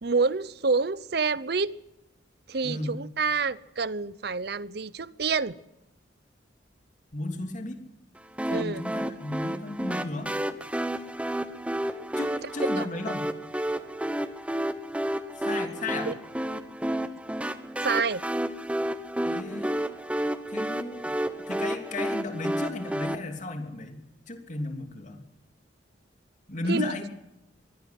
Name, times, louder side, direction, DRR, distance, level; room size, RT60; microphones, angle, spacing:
voice 1, 0.0-1.7 2.5-5.5 8.5-8.8 12.8-12.9 16.1-16.2 17.8-18.2 26.7-26.9, right 4 dB, 55° right, 19 dB, 0.7 m, -27 dB
voice 2, 2.6-3.0 7.1-7.8 8.5-10.3 12.2-13.3 15.4-16.1 19.3-19.8 20.5-21.2 21.5-25.2 26.5-27.0, left 2 dB, 40° left, 5 dB, 3.0 m, -34 dB
sound 1, 8.4-23.2, right 1 dB, 5° right, 1.0 m, -31 dB
23.0 x 16.5 x 7.7 m, 0.92 s
head